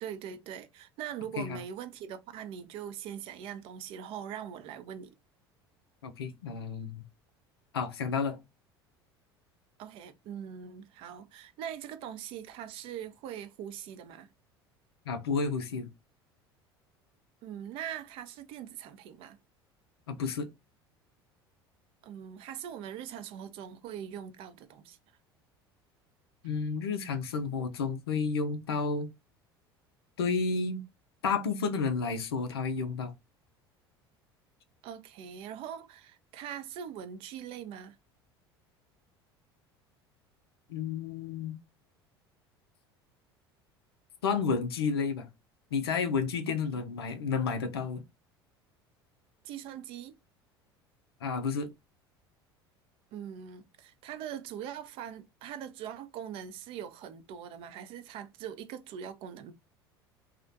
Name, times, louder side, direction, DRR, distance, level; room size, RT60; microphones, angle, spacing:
voice 1, 0.0-5.1 9.8-14.3 17.4-19.4 22.0-25.0 34.8-38.0 46.5-46.6 49.4-50.1 53.1-59.5, right 9 dB, 45° right, 0.4 m, -42 dB
voice 2, 6.0-7.0 7.7-8.4 15.1-15.9 20.1-20.5 26.4-29.1 30.2-30.8 31.2-33.1 40.7-41.6 44.2-45.3 45.7-48.0 51.2-51.7, left 5 dB, 70° left, 0.5 m, -31 dB
2.4 x 2.1 x 2.5 m
figure-of-eight pair, 70°, 13 cm